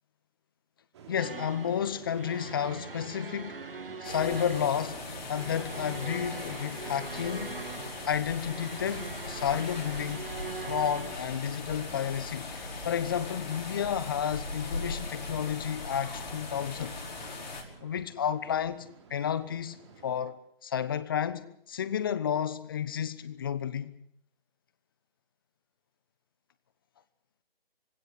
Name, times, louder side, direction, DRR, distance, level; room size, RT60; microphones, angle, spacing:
sound 1, 0.9-20.2, right 5 dB, 30° right, 3.0 m, -51 dB
voice 1, 1.1-3.6 4.0-5.0 5.3-7.6 8.1-10.3 10.6-16.9 17.8-19.8 20.0-20.4 20.6-23.9, left 8 dB, 25° left, 1.0 m, -31 dB
sound 2, 1.2-11.2, right 5 dB, 65° right, 1.8 m, -42 dB
sound 3, 4.0-17.6, left 3 dB, 50° left, 5.6 m, -39 dB
26.0 x 16.5 x 8.3 m
figure-of-eight pair, 155°, 30 cm